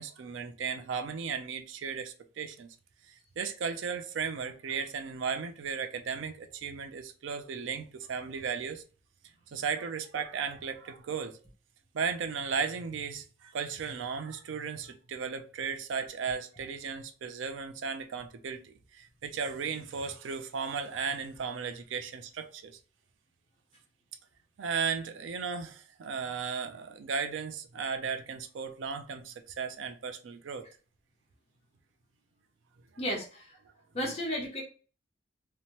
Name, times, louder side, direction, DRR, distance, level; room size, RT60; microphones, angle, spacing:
voice 1, 0.0-2.7 3.1-8.8 9.5-11.4 11.9-22.7 24.6-30.7, right 6 dB, 80° right, 0.4 m, -35 dB
voice 2, 33.0-33.5 33.9-34.6, equal, 30° left, 0.8 m, -33 dB
2.8 x 2.1 x 2.9 m
head